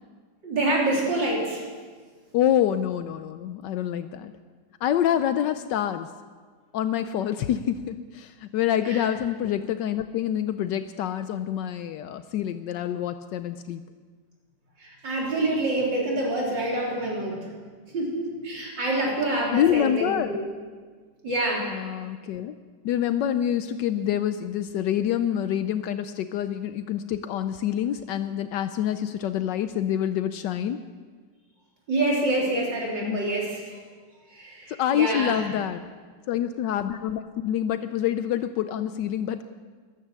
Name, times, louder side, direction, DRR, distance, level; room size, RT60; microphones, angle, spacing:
voice 1, 0.4-1.6 8.8-9.0 14.8-17.5 17.9-20.4 21.2-21.7 31.9-33.6 34.3-35.4, right 2 dB, 75° right, -3 dB, 4.1 m, -26 dB
voice 2, 2.3-4.3 4.8-6.1 6.7-13.8 19.5-20.4 21.6-22.5 22.8-30.8 33.0-33.2 34.7-35.8 36.3-39.4, left 10 dB, 75° left, 10 dB, 1.2 m, -26 dB
14.5 x 12.5 x 7.3 m, 1.5 s
omnidirectional pair, 2.0 m